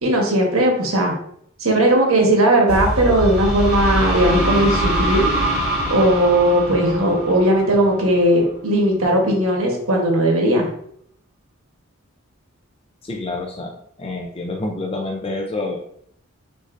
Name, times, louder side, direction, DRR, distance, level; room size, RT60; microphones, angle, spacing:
voice 1, 0.0-1.1 1.6-5.3 5.9-10.7, right 1 dB, 80° right, 0 dB, 1.1 m, -17 dB
sound 1, 2.7-8.3, right 1 dB, 5° right, 1.7 m, -23 dB
voice 2, 13.0-15.8, left 2 dB, 25° left, 0 dB, 0.4 m, -28 dB
6.3 x 2.7 x 2.5 m, 0.68 s
head